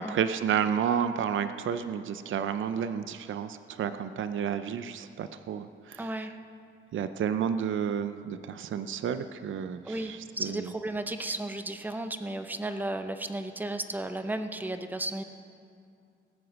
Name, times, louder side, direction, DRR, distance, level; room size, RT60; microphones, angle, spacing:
voice 1, 0.0-6.1 6.9-10.7, right 8 dB, 70° right, 10 dB, 0.5 m, -31 dB
voice 2, 6.0-6.4 9.8-15.2, right 2 dB, 10° right, 8 dB, 0.6 m, -34 dB
19.5 x 8.0 x 6.2 m, 2.5 s
wide cardioid pair, 135°, 21 cm